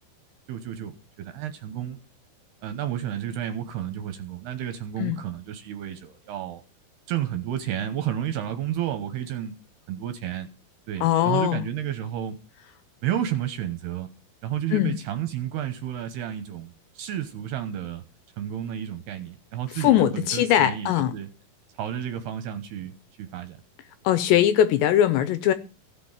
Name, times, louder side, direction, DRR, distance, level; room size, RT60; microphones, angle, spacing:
voice 1, 0.5-2.0 2.6-6.6 7.1-9.5 9.9-10.5 10.9-12.4 13.0-14.1 14.4-18.0 18.4-21.3 21.8-23.6, right 10 dB, 70° right, 2.6 m, -31 dB
voice 2, 11.0-11.6 14.7-15.0 19.8-21.1 24.0-25.5, left 11 dB, 75° left, 2.7 m, -21 dB
16.0 x 6.0 x 8.8 m
omnidirectional pair, 5.6 m